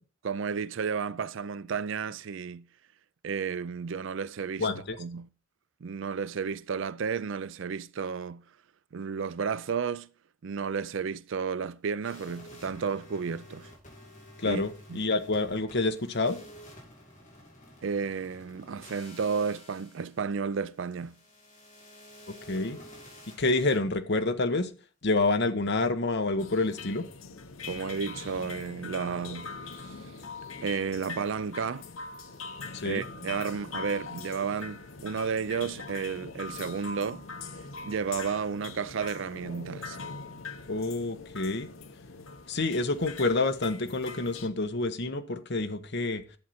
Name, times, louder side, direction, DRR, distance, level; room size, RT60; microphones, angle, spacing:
voice 1, 0.2-2.7 3.2-4.7 5.0-5.3 5.8-8.4 8.9-10.1 10.4-13.7 14.4-14.6 14.9-15.0 17.8-21.2 27.7-29.5 29.9-30.0 30.6-31.9 32.8-37.2 37.8-40.0, right 6 dB, 65° right, 0.4 m, -32 dB
voice 2, 4.6-5.0 14.4-16.4 22.3-22.8 23.4-24.7 25.0-27.0 32.7-33.0 40.7-41.7 42.5-46.2, left 3 dB, 60° left, 1.2 m, -28 dB
sound 1, 12.0-23.8 27.6-27.8 28.1-28.4, equal, 40° left, 5.6 m, -51 dB
sound 2, 26.4-44.5, left 4 dB, 80° left, 1.1 m, -42 dB
11.0 x 7.7 x 4.3 m
head